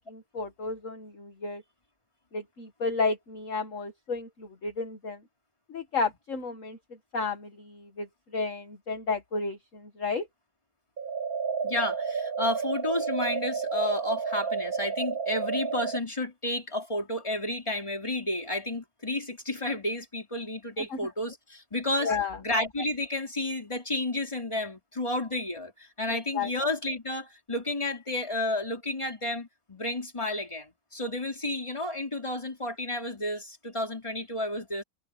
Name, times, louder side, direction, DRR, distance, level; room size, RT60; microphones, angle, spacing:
voice 1, 0.0-1.6 2.3-5.2 5.7-6.8 7.1-10.3 20.9-21.0 22.0-22.4 26.3-26.5, left 4 dB, 40° left, 2.0 m, -32 dB
sound 1, 11.0-16.0, right 5 dB, 40° right, 6.9 m, -31 dB
voice 2, 11.6-22.1 22.4-34.8, left 1 dB, 15° left, 3.7 m, -31 dB
omnidirectional pair, 2.3 m